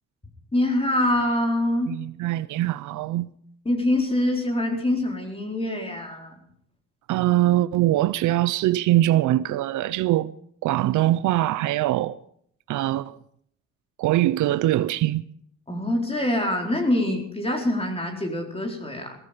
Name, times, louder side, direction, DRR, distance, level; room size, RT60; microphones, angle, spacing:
voice 1, 0.5-1.9 3.6-6.4 15.7-19.2, left 1 dB, 20° left, 4.3 m, -24 dB
voice 2, 1.9-3.3 7.1-10.3 10.6-12.2 12.7-13.2 14.0-15.2, right 15 dB, 80° right, 0.6 m, -22 dB
18.0 x 14.0 x 5.2 m
cardioid pair, 90°, 30 cm